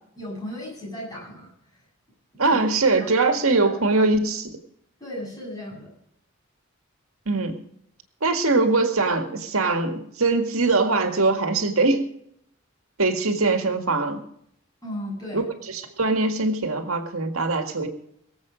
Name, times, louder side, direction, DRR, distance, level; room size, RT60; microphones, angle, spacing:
voice 1, 0.2-1.8 2.5-2.6 2.9-3.7 5.0-5.9 14.8-15.5, left 1 dB, 20° left, -4 dB, 7.6 m, -36 dB
voice 2, 2.4-4.5 7.3-7.6 8.2-12.1 13.0-14.2 15.3-17.9, right 3 dB, 90° right, 6 dB, 1.9 m, -22 dB
23.0 x 7.9 x 5.1 m, 0.72 s
head